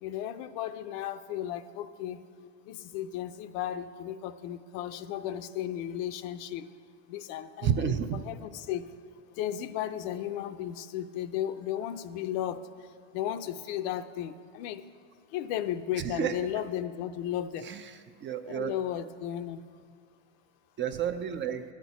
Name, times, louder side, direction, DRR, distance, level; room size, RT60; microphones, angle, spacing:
voice 1, 0.0-6.7 7.1-8.9 9.4-12.6 13.1-14.8 15.3-17.7 18.5-19.6, left 11 dB, 65° left, 11 dB, 0.6 m, -35 dB
voice 2, 7.6-8.2 16.0-16.4 17.6-18.7 20.8-21.6, right 9 dB, 30° right, 9 dB, 0.4 m, -31 dB
12.0 x 4.5 x 8.1 m, 2.2 s
supercardioid pair, 120°, 40 cm